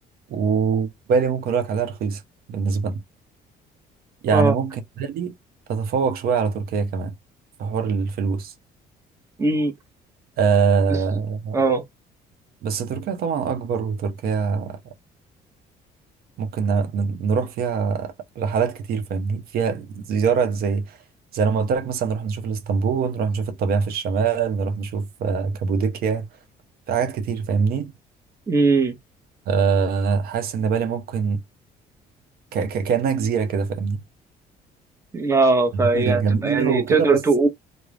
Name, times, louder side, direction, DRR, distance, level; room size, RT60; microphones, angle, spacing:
voice 1, 0.3-2.2 2.5-3.0 4.2-5.3 5.7-7.1 7.6-8.5 10.4-11.6 12.6-14.8 16.4-21.0 21.3-26.3 26.9-27.9 29.5-31.4 32.5-34.0 35.8-37.2, right 5 dB, 65° right, 0.6 m, -23 dB
voice 2, 9.4-9.7 11.5-11.8 28.5-29.0 35.1-37.5, right 3 dB, 15° right, 0.7 m, -19 dB
2.4 x 2.0 x 3.2 m
cardioid pair, 110°, 17 cm